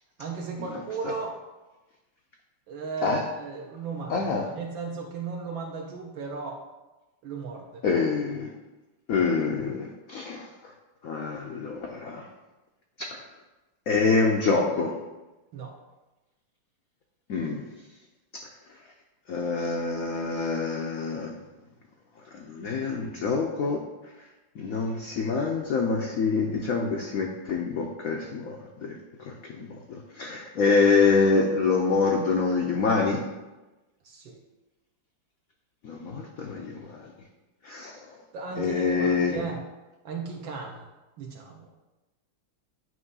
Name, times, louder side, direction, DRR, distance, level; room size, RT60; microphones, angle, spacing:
voice 1, 0.2-1.4 2.7-6.7 7.2-7.8 15.5-15.7 34.0-34.4 38.3-39.6 40.0-40.9 41.2-41.7, right 4 dB, 70° right, 0 dB, 1.5 m, -35 dB
voice 2, 4.1-4.5 7.8-8.5 9.1-10.5 11.0-12.3 13.0-13.2 13.9-15.0 17.3-17.6 19.3-21.3 22.3-23.8 24.6-33.2 35.8-37.1 37.6-38.0 38.6-39.4, left 4 dB, 70° left, 1 dB, 0.8 m, -26 dB
9.4 x 3.2 x 5.4 m, 1.1 s
omnidirectional pair, 2.3 m